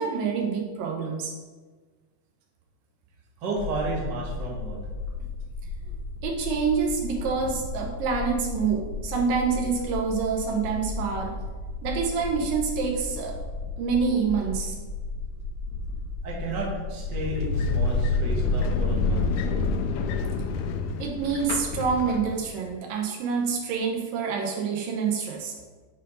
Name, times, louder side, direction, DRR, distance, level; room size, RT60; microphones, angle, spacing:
voice 1, 0.0-1.3 6.2-11.3 11.8-13.4 13.8-14.8 21.0-25.6, right 5 dB, 90° right, 0 dB, 2.8 m, -27 dB
voice 2, 3.4-4.8 16.2-19.3, right 2 dB, 45° right, -2 dB, 1.6 m, -32 dB
sound 1, 3.6-18.0, left 3 dB, 65° right, 2.9 m, -35 dB
sound 2, 17.0-22.6, left 3 dB, 80° left, 2.0 m, -27 dB
7.0 x 4.6 x 5.4 m, 1.4 s
omnidirectional pair, 3.9 m